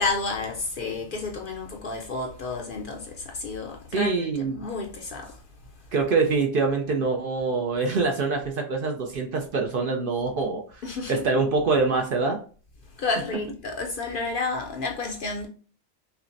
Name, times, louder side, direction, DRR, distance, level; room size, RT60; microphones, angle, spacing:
voice 1, 0.0-5.4 10.8-11.3 12.9-15.5, left 3 dB, 60° left, 0.6 m, -31 dB
voice 2, 3.9-4.6 5.9-10.8 11.1-12.4, right 4 dB, 60° right, 0.6 m, -25 dB
5.6 x 2.0 x 2.5 m
omnidirectional pair, 1.2 m